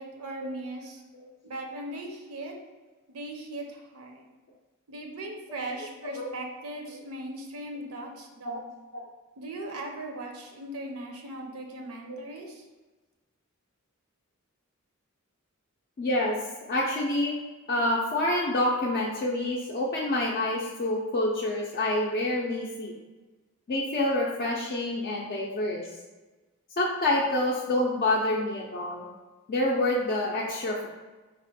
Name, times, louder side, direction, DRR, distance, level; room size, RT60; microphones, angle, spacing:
voice 1, 0.0-1.0 1.4-2.6 3.1-4.3 4.9-8.7 9.4-12.6, right 1 dB, 75° right, 2 dB, 0.6 m, -39 dB
voice 2, 16.0-16.4 16.7-17.3 17.7-22.9 23.7-25.9 26.8-29.1 29.5-30.9, left 1 dB, 45° left, -3 dB, 0.4 m, -27 dB
4.0 x 2.1 x 4.1 m, 1.2 s
head